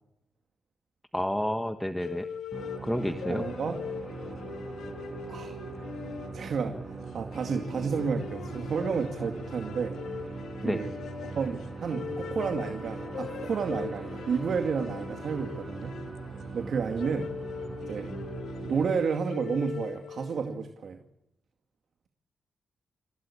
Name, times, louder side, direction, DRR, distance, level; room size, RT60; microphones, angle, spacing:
voice 1, 1.1-2.3 2.8-3.4 10.6-10.8, left 1 dB, 5° left, 7 dB, 1.3 m, -30 dB
sound 1, 2.0-20.5, left 7 dB, 85° left, 1.5 m, -41 dB
sound 2, 2.5-18.9, right 4 dB, 25° right, 7.6 m, -40 dB
voice 2, 3.3-3.8 5.3-5.5 6.3-10.2 10.6-10.9 11.3-16.0 16.5-17.4 17.8-18.1 18.6-21.0, right 6 dB, 55° right, 5 dB, 2.3 m, -31 dB
28.0 x 17.0 x 8.6 m, 0.84 s
wide cardioid pair, 135°, 0 cm